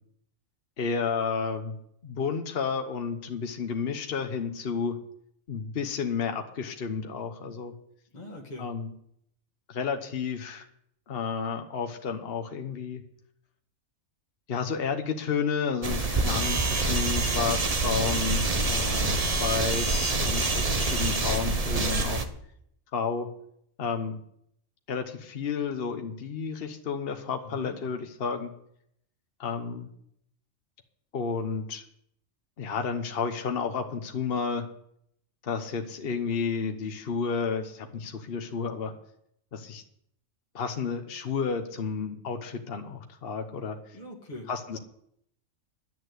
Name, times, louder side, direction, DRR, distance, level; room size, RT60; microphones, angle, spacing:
voice 1, 0.8-1.8 2.0-5.0 5.5-7.7 8.6-8.9 9.7-10.7 11.1-13.0 14.5-22.2 22.9-23.3 23.8-24.2 24.9-28.5 29.4-29.9 31.1-31.8 32.6-34.7 35.4-38.9 39.5-39.8 40.5-43.8 44.5-44.8, left 5 dB, 45° left, 5 dB, 1.2 m, -31 dB
voice 2, 8.1-8.7 18.3-18.7 27.4-27.8 43.9-44.8, left 1 dB, 30° left, 0 dB, 1.8 m, -42 dB
sound 1, 15.8-22.3, right 3 dB, 30° right, 1.0 m, -26 dB
11.0 x 8.8 x 7.9 m, 0.72 s
omnidirectional pair, 1.4 m